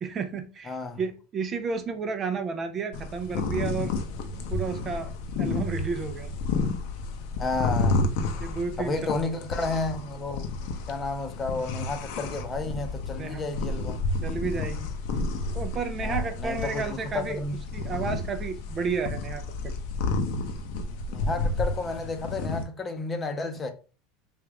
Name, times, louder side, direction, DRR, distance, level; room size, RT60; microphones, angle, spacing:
voice 1, 0.0-3.9 4.5-5.1 5.4-6.3 8.4-9.3 13.1-13.5 14.2-14.9 15.5-17.4 17.7-19.7, right 5 dB, 30° right, 0.5 m, -32 dB
voice 2, 0.7-1.0 7.4-8.1 8.8-10.5 10.9-14.0 16.0-17.6 21.1-23.7, left 3 dB, 25° left, 0.7 m, -32 dB
sound 1, 2.9-22.6, left 3 dB, 70° left, 0.7 m, -31 dB
3.5 x 2.4 x 3.4 m
supercardioid pair, 105°, 0 cm